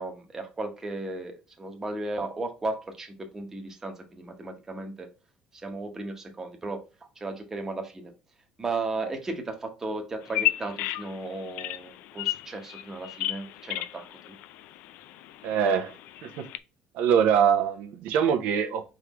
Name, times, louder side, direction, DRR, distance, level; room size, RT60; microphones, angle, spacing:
voice 1, 0.0-5.1 5.5-6.8 7.2-8.1 8.6-14.3, right 2 dB, 15° right, 1.0 m, -35 dB
Bird vocalization bird call bird song, 10.2-16.6, left 16 dB, 75° left, 0.4 m, -34 dB
voice 2, 15.4-15.9 16.2-16.5 16.9-18.8, right 8 dB, 75° right, 0.8 m, -23 dB
4.7 x 3.7 x 2.9 m
cardioid pair, 160°, 3 cm